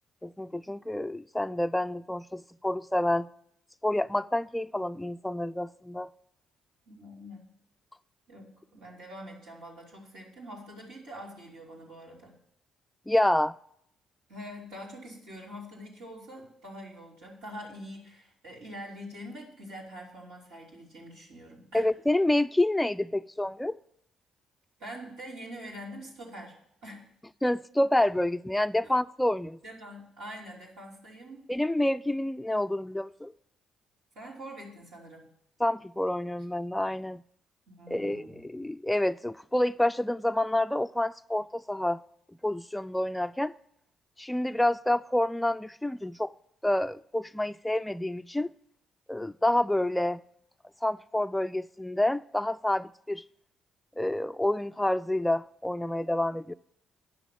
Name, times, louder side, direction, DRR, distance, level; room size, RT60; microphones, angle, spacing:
voice 1, 0.2-3.3 3.8-6.1 13.1-13.5 21.7-23.8 27.4-29.6 31.5-33.3 35.6-37.2 37.9-42.0 42.4-43.5 44.2-46.3 46.6-48.5 49.1-50.2 50.8-53.2 54.0-56.5, left 1 dB, 10° left, 0.3 m, -28 dB
voice 2, 6.9-7.5 8.3-12.3 14.3-21.8 24.8-26.5 26.8-27.1 28.8-28.9 29.6-31.5 34.1-35.3 37.8-38.4, equal, 75° right, 2.9 m, -44 dB
9.8 x 6.0 x 7.3 m
hypercardioid pair, 45°, 0 cm